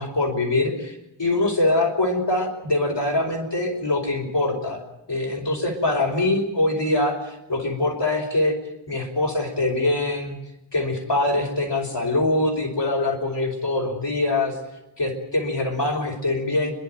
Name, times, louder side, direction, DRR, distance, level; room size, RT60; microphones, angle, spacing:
voice 1, 0.0-4.8 5.1-8.6 8.9-10.4 10.7-14.5 15.0-16.7, left 2 dB, 55° left, 3 dB, 5.0 m, -23 dB
30.0 x 11.5 x 9.0 m, 0.93 s
wide cardioid pair, 55°, 49 cm